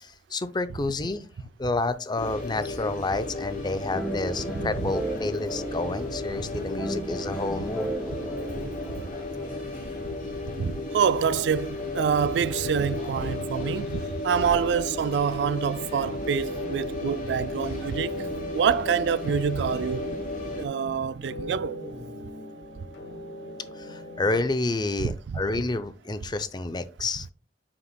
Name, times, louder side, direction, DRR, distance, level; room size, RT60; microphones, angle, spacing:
voice 1, 0.0-7.9 15.9-16.0 23.8-27.3, left 2 dB, 25° left, 0.5 m, -29 dB
sound 1, 2.2-20.7, left 2 dB, 50° left, 2.8 m, -34 dB
sound 2, 3.9-9.6, right 2 dB, ahead, 2.4 m, -35 dB
voice 2, 10.6-18.1 18.5-20.1 20.6-21.8 25.3-25.4, right 7 dB, 70° right, 0.3 m, -26 dB
sound 3, 15.7-24.5, equal, 75° left, 1.8 m, -39 dB
9.5 x 5.9 x 2.2 m
head